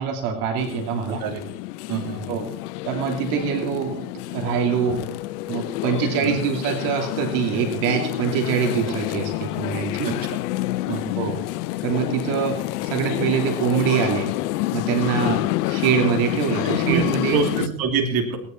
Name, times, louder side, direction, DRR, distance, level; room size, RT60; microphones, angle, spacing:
voice 1, 0.0-1.2 2.3-2.5 2.8-4.0 4.3-5.0 5.5-10.1 11.2-11.4 11.8-14.3 14.7-15.4 15.6-17.4, right 7 dB, 70° right, 4 dB, 2.7 m, -24 dB
sound 1, 0.6-17.7, left 17 dB, 90° left, 0.7 m, -28 dB
voice 2, 1.1-1.4 1.9-2.3 4.9-5.0 6.3-6.4 10.0-10.4 10.9-11.2 15.2-15.4 16.6-18.4, right 6 dB, 50° right, 3 dB, 3.0 m, -26 dB
18.5 x 10.0 x 4.4 m, 0.64 s
supercardioid pair, 105°, 45 cm